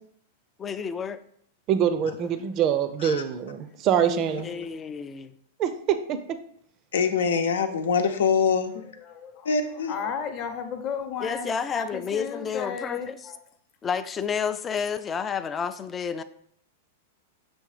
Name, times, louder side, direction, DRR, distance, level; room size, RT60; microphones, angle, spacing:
voice 1, 0.6-1.2 4.4-5.4 11.2-13.2 13.8-16.2, left 6 dB, 20° left, 12 dB, 0.4 m, -30 dB
voice 2, 1.7-4.5 5.6-6.4, right 9 dB, 35° right, 10 dB, 0.5 m, -25 dB
voice 3, 3.9-4.8 8.8-13.4, left 6 dB, 40° left, 6 dB, 0.9 m, -35 dB
voice 4, 6.9-8.7 9.4-9.9, left 6 dB, 85° left, 7 dB, 0.8 m, -24 dB
7.0 x 3.1 x 4.9 m, 0.65 s
hypercardioid pair, 135°, 0 cm